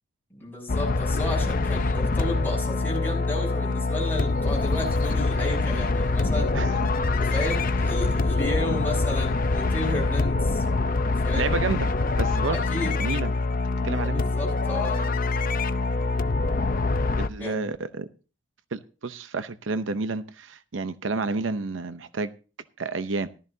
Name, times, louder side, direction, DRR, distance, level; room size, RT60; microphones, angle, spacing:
voice 1, 0.3-6.5 7.3-11.6 12.5-13.0 14.0-15.3 17.4-17.6, left 1 dB, 10° left, -2 dB, 6.1 m, -33 dB
sound 1, 0.7-17.3, left 3 dB, 45° left, 0.6 m, -25 dB
voice 2, 6.5-6.9 11.3-11.9 12.2-13.3 13.8-14.2 17.2-18.1 18.7-22.3 22.8-23.3, right 3 dB, 80° right, 12 dB, 0.7 m, -30 dB
15.0 x 13.0 x 2.7 m, 0.34 s
head